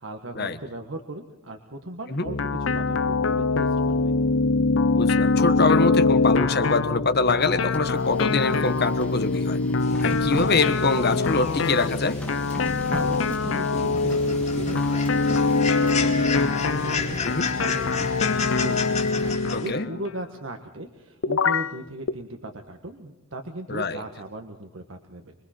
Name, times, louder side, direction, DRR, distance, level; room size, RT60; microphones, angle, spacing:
voice 1, 0.0-4.2 12.9-18.9 19.2-25.3, right 1 dB, 90° right, 4 dB, 1.6 m, -38 dB
sound 1, 2.3-20.1 21.2-21.7 22.1-22.2, left 3 dB, 85° left, 0.6 m, -24 dB
voice 2, 4.9-9.6 10.0-12.2 17.2-17.5 19.5-19.9 23.7-24.0, left 3 dB, 55° left, 10 dB, 1.4 m, -24 dB
Printer, 7.6-19.6, equal, 5° left, 2.2 m, -40 dB
sound 2, 9.8-19.7, left 4 dB, 35° left, 2.5 m, -33 dB
26.0 x 22.0 x 4.5 m, 1.1 s
head